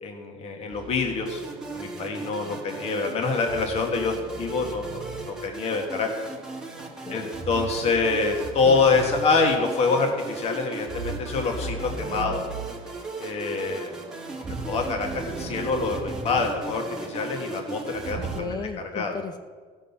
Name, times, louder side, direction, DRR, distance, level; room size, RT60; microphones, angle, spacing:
voice 1, 0.0-1.4 1.7-6.1 7.1-12.4 13.2-13.9 14.7-18.6 18.9-19.1, left 4 dB, 40° left, 2 dB, 1.7 m, -26 dB
sound 1, 0.7-18.5, right 3 dB, 30° right, 0.9 m, -39 dB
sound 2, 1.3-18.4, right 3 dB, 5° right, 1.4 m, -38 dB
voice 2, 6.9-7.2 8.7-8.8 18.2-19.4, left 4 dB, 25° left, 7 dB, 0.8 m, -35 dB
15.0 x 6.3 x 7.1 m, 1.5 s
cardioid pair, 140°, 16 cm